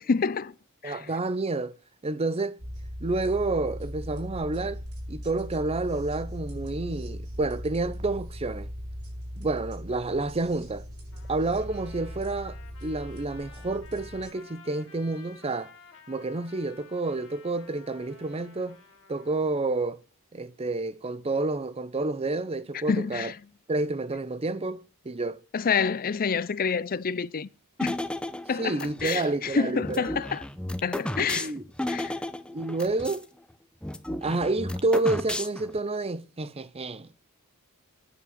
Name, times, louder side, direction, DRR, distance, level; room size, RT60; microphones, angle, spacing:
voice 1, 0.1-0.5 0.8-1.1 22.9-23.3 25.5-27.5 27.8-28.0 28.5-30.4 30.8-31.5 31.9-32.2, left 5 dB, 40° left, 0.5 m, -28 dB
voice 2, 0.8-1.8 2.0-2.6 3.0-4.8 5.1-8.7 9.4-10.9 11.3-15.7 16.1-18.8 19.1-20.0 20.3-23.3 23.7-25.4 28.6-30.1 31.2-31.6 32.5-33.3 34.2-37.1, right 2 dB, 25° right, 0.6 m, -29 dB
sound 1, 2.6-14.3, equal, 90° right, 6.7 m, -39 dB
Trumpet, 11.1-19.4, left 5 dB, 60° left, 2.7 m, -53 dB
sound 2, 27.8-29.2 29.8-33.2 33.5-33.6 33.8-35.8, left 1 dB, 5° left, 0.8 m, -33 dB
9.6 x 8.4 x 7.7 m
head